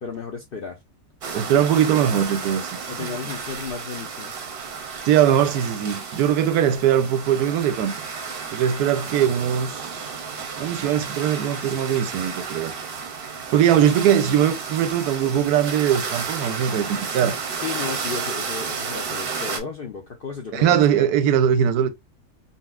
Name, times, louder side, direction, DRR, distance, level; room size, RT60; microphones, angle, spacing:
voice 1, 0.0-0.8 2.9-4.3 13.8-13.9 17.6-21.0, left 5 dB, 70° left, 0.5 m, -34 dB
sound 1, 1.2-19.6, right 5 dB, 55° right, 0.7 m, -32 dB
voice 2, 1.3-3.1 5.1-7.9 8.5-10.1 10.6-12.7 13.5-17.4 20.5-21.9, right 9 dB, 90° right, 1.1 m, -21 dB
4.0 x 2.0 x 2.3 m
omnidirectional pair, 1.6 m